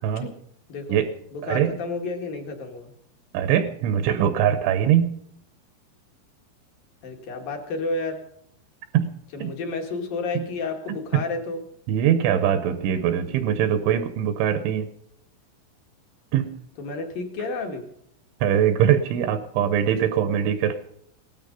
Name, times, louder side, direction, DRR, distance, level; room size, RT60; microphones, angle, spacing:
voice 1, 0.7-1.0 1.3-2.9 7.0-8.2 9.3-11.6 16.8-17.9, left 3 dB, 55° left, 4 dB, 3.0 m, -31 dB
voice 2, 1.4-1.8 3.3-5.2 8.9-9.1 9.4-9.5 10.4-10.5 11.1-11.2 11.9-14.9 16.3-16.5 18.4-20.8, right 9 dB, 80° right, 9 dB, 3.2 m, -22 dB
18.0 x 13.0 x 5.3 m, 0.69 s
omnidirectional pair, 5.8 m